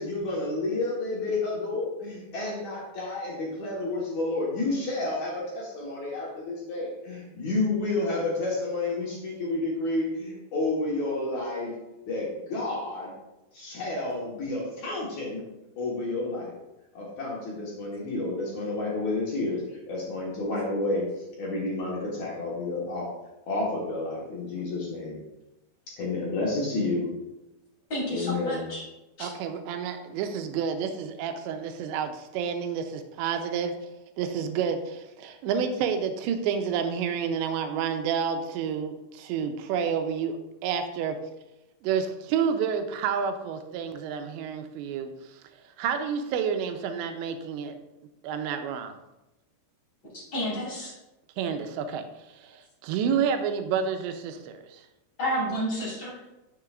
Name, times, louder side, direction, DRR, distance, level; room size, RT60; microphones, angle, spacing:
voice 1, 0.0-11.7 12.1-13.1 13.5-15.4 15.8-16.5 16.9-21.1 21.4-23.1 23.5-25.2 25.9-27.1 28.1-28.7, left 2 dB, 60° left, -5 dB, 2.0 m, -30 dB
voice 2, 27.9-28.8 29.2-29.3 50.1-50.9 55.2-56.1, equal, 30° left, -5 dB, 2.8 m, -30 dB
voice 3, 29.2-33.7 34.2-41.2 41.8-45.4 45.8-47.8 48.2-49.0 51.4-54.8, right 7 dB, 85° right, 7 dB, 2.9 m, -29 dB
9.5 x 6.8 x 2.5 m, 0.96 s
omnidirectional pair, 5.1 m